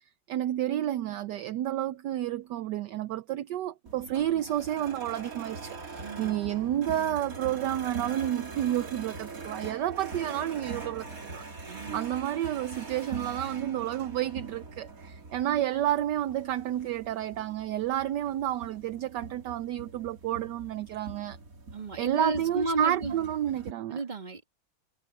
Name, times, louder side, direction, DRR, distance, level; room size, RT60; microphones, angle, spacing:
voice 1, 0.3-21.4 22.0-24.0, right 12 dB, 70° right, 1.2 m, -30 dB
sound 1, 3.9-23.7, right 4 dB, 45° right, 2.8 m, -43 dB
voice 2, 6.0-6.4 11.7-12.0 21.7-23.2 23.9-24.5, right 3 dB, 25° right, 2.0 m, -33 dB
omnidirectional pair, 2.1 m